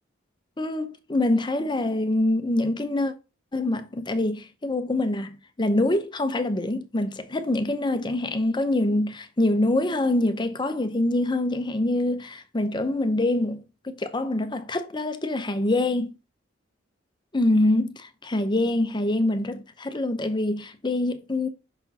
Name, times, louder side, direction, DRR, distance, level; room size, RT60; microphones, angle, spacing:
voice 1, 0.6-3.1 3.5-16.1 17.3-21.5, left 1 dB, 25° left, 0.8 m, -25 dB
6.2 x 5.9 x 2.8 m
head